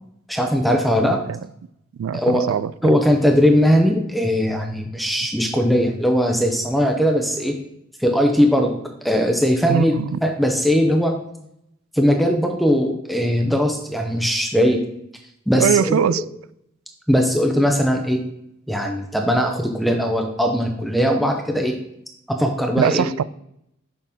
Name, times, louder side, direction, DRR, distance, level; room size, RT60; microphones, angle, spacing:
voice 1, 0.3-1.2 2.1-2.5 2.8-7.5 8.0-8.8 9.0-11.1 11.9-14.8 15.5-16.0 17.1-18.2 18.7-21.7 22.3-23.1, equal, ahead, 0.6 m, -19 dB
voice 2, 2.0-2.9 9.7-10.2 15.6-16.2 22.8-23.2, right 8 dB, 75° right, 0.3 m, -21 dB
6.7 x 5.4 x 3.5 m
head